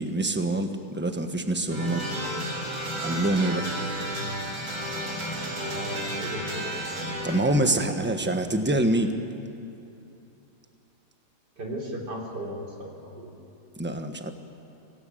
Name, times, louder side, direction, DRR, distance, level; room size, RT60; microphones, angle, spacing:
voice 1, 0.0-2.0 3.0-3.7 7.2-9.2 13.8-14.3, right 1 dB, 5° right, 6 dB, 1.1 m, -25 dB
sound 1, 1.7-7.4, equal, 60° right, 4.6 m, -32 dB
voice 2, 5.6-7.0 11.6-13.3, right 1 dB, 90° right, 0 dB, 4.2 m, -36 dB
25.0 x 17.0 x 9.2 m, 2.7 s
omnidirectional pair, 1.8 m